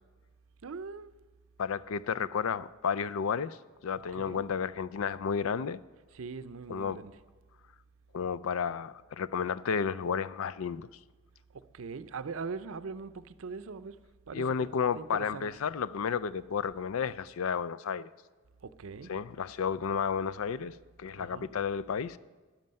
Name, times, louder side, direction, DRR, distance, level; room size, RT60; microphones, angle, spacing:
voice 1, 0.6-1.1 4.1-4.5 6.1-7.2 11.5-14.0 14.3-14.7 14.9-15.5 18.6-19.1 21.2-21.5, right 4 dB, 70° right, 0.5 m, -41 dB
voice 2, 1.6-3.6 3.8-5.8 6.7-7.0 8.1-10.9 14.3-18.1 19.1-22.2, left 6 dB, 75° left, 0.4 m, -32 dB
13.0 x 10.5 x 5.4 m
head